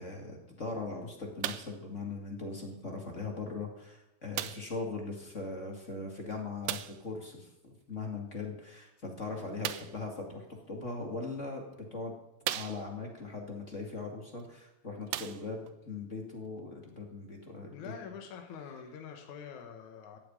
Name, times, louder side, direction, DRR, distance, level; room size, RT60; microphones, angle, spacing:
voice 1, 0.0-12.1 12.5-17.9, left 3 dB, 25° left, 2 dB, 2.2 m, -40 dB
sound 1, 1.4-1.8 2.7-2.8 4.3-4.8 6.6-7.1 9.6-10.0 11.0-11.1 11.7-11.8 12.4-13.1 14.4-14.5 15.0-15.8 16.6-16.7, right 13 dB, 85° right, 2.2 m, -37 dB
voice 2, 17.7-20.2, left 7 dB, 70° left, 4 dB, 2.8 m, -45 dB
14.0 x 8.4 x 9.0 m, 0.91 s
omnidirectional pair, 3.6 m